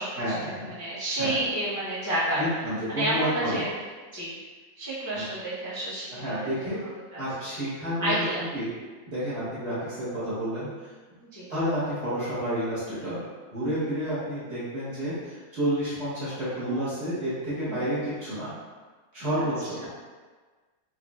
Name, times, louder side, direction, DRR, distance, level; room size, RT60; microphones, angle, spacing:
voice 1, 0.2-0.7 1.2-1.4 2.3-3.7 5.1-5.2 6.2-6.8 7.2-8.1 8.5-8.7 9.1-10.9 11.5-13.2 13.5-18.5 19.1-19.9, equal, 50° right, -13 dB, 1.5 m, -30 dB
voice 2, 0.8-2.6 2.9-3.7 4.1-4.3 4.8-6.3 7.1-7.2 8.0-8.4 11.2-11.5 17.7-17.8, right 1 dB, 25° left, -10 dB, 0.4 m, -29 dB
4.5 x 2.5 x 2.3 m, 1.4 s
omnidirectional pair, 1.5 m